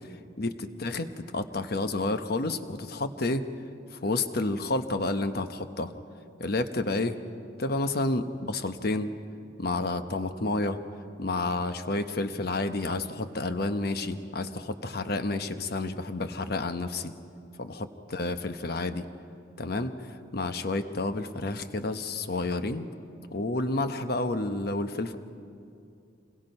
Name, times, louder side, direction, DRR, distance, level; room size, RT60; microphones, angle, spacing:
voice 1, 0.4-1.1 1.3-3.4 3.9-5.9 6.4-7.2 7.6-9.1 9.6-10.8 11.2-17.1 17.6-19.0 19.6-20.0 20.3-22.9 23.3-25.1, left 2 dB, 55° left, 9 dB, 1.0 m, -30 dB
27.5 x 21.0 x 5.5 m, 2.5 s
head